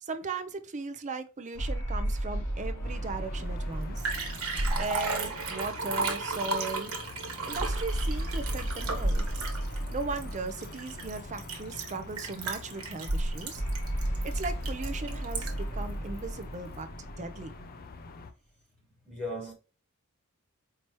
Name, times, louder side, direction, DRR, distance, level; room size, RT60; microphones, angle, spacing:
voice 1, 0.0-4.1 4.8-6.9 7.4-9.3 9.9-13.6 14.2-17.5, right 3 dB, 35° right, 0.5 m, -37 dB
sound 1, 1.5-6.1 7.5-11.9 13.5-18.1, right 1 dB, 80° left, 2.4 m, -35 dB
sound 2, 2.8-18.3, left 3 dB, 45° left, 0.5 m, -46 dB
Liquid, 3.5-3.6 3.8-15.7 16.2-16.3, right 3 dB, 70° right, 1.3 m, -33 dB
voice 2, 4.0-4.4 19.0-19.5, left 1 dB, 5° left, 1.6 m, -38 dB
4.6 x 2.9 x 2.9 m
head